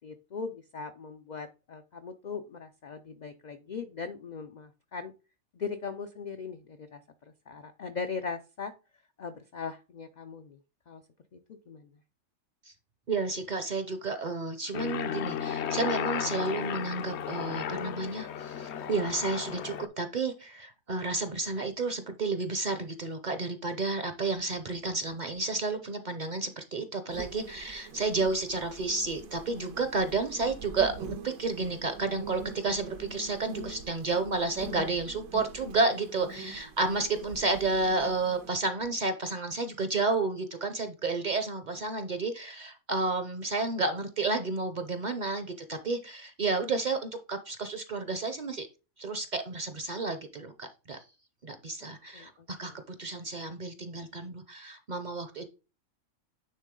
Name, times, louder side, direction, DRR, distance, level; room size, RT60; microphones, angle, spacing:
voice 1, 0.0-5.1 5.5-8.7 9.2-10.6 10.9-11.0 11.3-11.9 51.8-52.8, left 5 dB, 80° left, 0.4 m, -40 dB
voice 2, 13.1-48.7 49.0-51.0 51.4-52.7 53.0-55.5, right 3 dB, 45° right, 0.6 m, -31 dB
Aircraft, 14.7-19.9, left 8 dB, 65° left, 0.7 m, -34 dB
sound 1, 27.1-38.5, right 5 dB, 85° right, 1.3 m, -44 dB
9.4 x 3.6 x 3.7 m
omnidirectional pair, 1.4 m